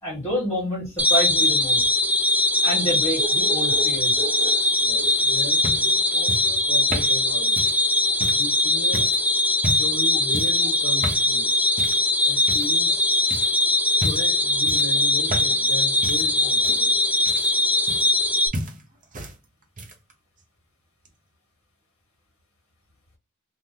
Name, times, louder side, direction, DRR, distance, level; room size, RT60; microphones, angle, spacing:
voice 1, 0.0-1.9 2.6-4.2, equal, 15° left, 1.4 m, -28 dB
sound 1, 1.0-18.5, left 1 dB, 5° right, 0.4 m, -21 dB
sound 2, 1.1-5.7, right 4 dB, 85° right, 0.6 m, -38 dB
voice 2, 4.8-7.7 8.4-9.1 9.7-11.5 12.3-13.0 14.0-17.0, left 2 dB, 70° left, 1.1 m, -36 dB
sound 3, 5.1-8.5 8.9-9.2 9.6-10.0 10.3-10.6 11.0-11.3 11.8-12.1 12.5-13.0 13.3-13.5 14.0-14.4 14.7-15.7 16.0-18.3 18.5-19.4 19.6-20.1 21.1-21.2, right 1 dB, 35° right, 0.7 m, -32 dB
2.8 x 2.0 x 3.6 m
head